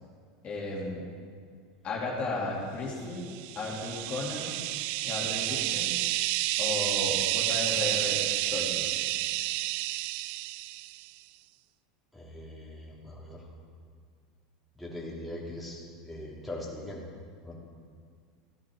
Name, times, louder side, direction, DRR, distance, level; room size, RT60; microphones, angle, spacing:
voice 1, 0.4-1.0 1.8-3.3 3.5-4.5 5.0-6.0 6.6-8.2 8.5-9.0, left 2 dB, 40° left, -4 dB, 2.8 m, -34 dB
sound 1, 3.3-11.1, right 17 dB, 60° right, 0.3 m, -30 dB
voice 2, 12.1-13.4 14.8-17.0 17.4-17.6, left 1 dB, ahead, -5 dB, 3.0 m, -41 dB
14.0 x 9.9 x 4.6 m, 2.1 s
hypercardioid pair, 100°, 3 cm